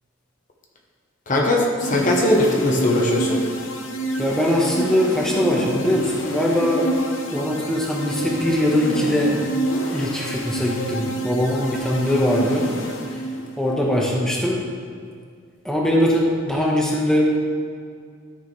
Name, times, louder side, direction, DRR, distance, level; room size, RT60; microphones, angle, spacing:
voice 1, 1.3-3.4, left 1 dB, 40° left, 0 dB, 0.9 m, -19 dB
sound 1, 1.8-13.6, right 1 dB, 65° left, 0.9 m, -28 dB
voice 2, 4.2-6.9 7.3-9.3 9.9-12.6 13.6-14.6 15.6-17.2, left 1 dB, 5° left, -3 dB, 1.1 m, -21 dB
12.5 x 6.5 x 3.2 m, 2.1 s
head